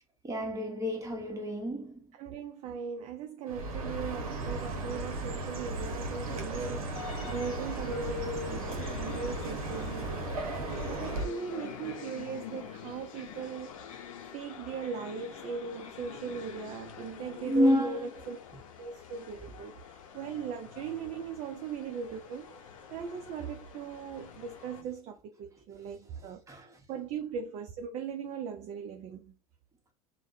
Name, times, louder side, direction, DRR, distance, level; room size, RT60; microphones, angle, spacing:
voice 1, 0.2-2.0 17.4-18.1 26.5-26.7, equal, 15° right, 1.1 m, -29 dB
voice 2, 2.2-10.3 10.8-13.8 14.3-18.0 18.3-18.4 18.8-22.5 22.9-26.4 26.9-29.3, right 6 dB, 35° right, 0.4 m, -39 dB
Chirp tweet, 3.5-11.3, right 2 dB, 75° right, 0.7 m, -36 dB
sound 1, 6.1-24.8, left 9 dB, 65° left, 0.7 m, -46 dB
3.3 x 2.1 x 2.6 m
figure-of-eight pair, 75°, 18 cm